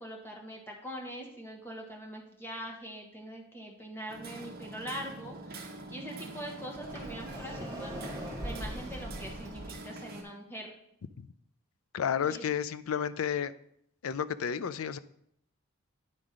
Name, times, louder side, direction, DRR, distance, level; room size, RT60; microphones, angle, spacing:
voice 1, 0.0-5.4 5.9-8.0 8.4-10.7 12.2-12.4, equal, 10° left, 0 dB, 1.3 m, -42 dB
Hammer, 4.1-10.2, right 2 dB, 45° right, 1.0 m, -45 dB
Sliding door, 6.8-9.8, equal, 15° right, 1.8 m, -41 dB
voice 2, 11.9-13.5 14.0-15.0, left 8 dB, 90° left, 15 dB, 0.4 m, -31 dB
9.7 x 3.6 x 5.1 m, 0.72 s
head